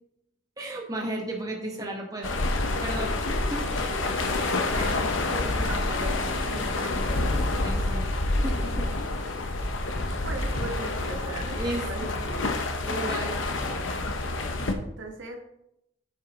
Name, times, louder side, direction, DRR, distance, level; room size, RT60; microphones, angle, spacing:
voice 1, 0.6-2.3 2.6-3.7 4.8-5.2 7.6-8.1 8.4-8.9 11.6-12.2 12.8-13.4, right 1 dB, 20° right, 0 dB, 1.2 m, -34 dB
sound 1, 2.2-14.7, left 2 dB, 90° left, 1.0 m, -28 dB
voice 2, 2.8-3.2 5.2-7.4 10.2-12.6 14.5-15.4, right 2 dB, 80° right, 2 dB, 1.5 m, -39 dB
8.9 x 6.4 x 3.1 m, 0.79 s
head